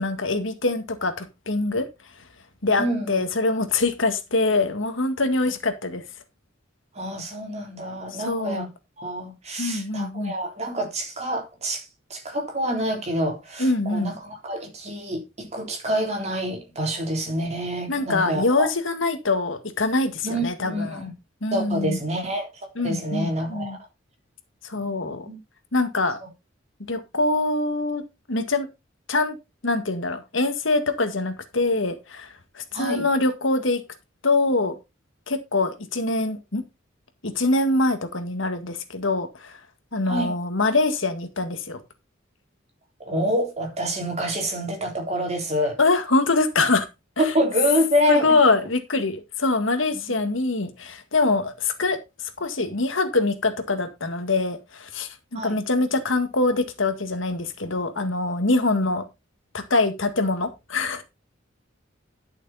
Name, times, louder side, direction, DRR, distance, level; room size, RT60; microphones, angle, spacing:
voice 1, 0.0-1.9 2.6-6.0 8.1-8.7 9.6-10.3 13.6-14.1 17.9-21.1 21.4-22.0 22.8-23.8 24.6-25.3 25.7-26.2 26.9-28.0 28.3-28.7 29.1-29.4 29.6-32.3 32.6-33.8 34.2-34.8 35.3-36.6 37.2-39.6 39.9-41.8 45.8-46.9 47.2-47.3 48.1-52.0 52.4-59.0 59.5-61.0, left 3 dB, 80° left, 1.9 m, -24 dB
voice 2, 2.8-3.2 6.9-8.7 9.0-18.7 20.2-21.1 21.5-22.5 22.8-23.8 24.7-25.4 26.2-26.3 32.7-33.1 40.0-40.3 43.0-45.8 47.2-48.4 49.9-50.0 55.3-55.6, equal, 35° right, 3.6 m, -27 dB
11.5 x 6.6 x 4.2 m
head